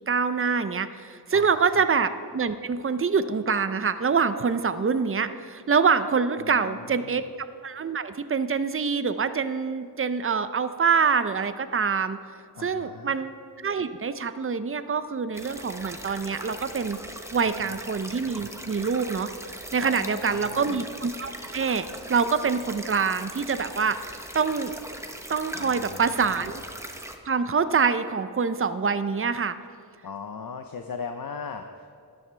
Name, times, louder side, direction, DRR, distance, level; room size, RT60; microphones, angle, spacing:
voice 1, 0.1-7.2 7.6-12.2 12.6-13.3 13.6-17.0 17.3-19.3 19.7-24.1 24.3-24.7 25.3-26.6 27.2-29.6, right 5 dB, 35° right, 12 dB, 0.6 m, -25 dB
voice 2, 1.3-1.8 6.4-7.2 12.5-13.1 19.8-20.8 25.5-26.6 30.0-32.0, left 5 dB, 60° left, 6 dB, 0.6 m, -39 dB
sound 1, 15.3-27.2, right 1 dB, 5° right, 0.9 m, -40 dB
12.5 x 10.5 x 3.3 m, 2.3 s
wide cardioid pair, 55°, 39 cm